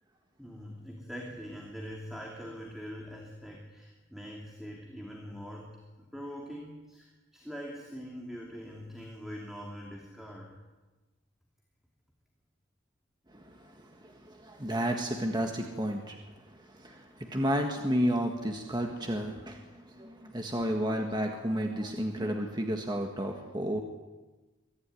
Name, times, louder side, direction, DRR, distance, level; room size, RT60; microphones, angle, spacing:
voice 1, 0.4-10.6, equal, ahead, -2 dB, 2.9 m, -43 dB
voice 2, 13.3-16.2 16.5-23.8, equal, 20° right, 3 dB, 1.7 m, -32 dB
23.5 x 15.0 x 9.8 m, 1.2 s
head